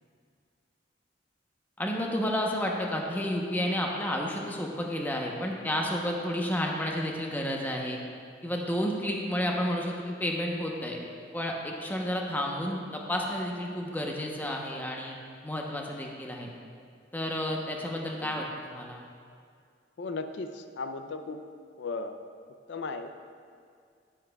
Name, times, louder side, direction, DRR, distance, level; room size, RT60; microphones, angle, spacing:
voice 1, 1.8-8.0 8.4-11.1 11.3-15.2 15.4-16.5 17.1-19.0, equal, 10° left, -1 dB, 0.8 m, -31 dB
voice 2, 20.0-21.4 21.8-22.2 22.7-23.1, left 3 dB, 70° left, 8 dB, 0.5 m, -36 dB
10.5 x 9.8 x 2.3 m, 2.2 s
head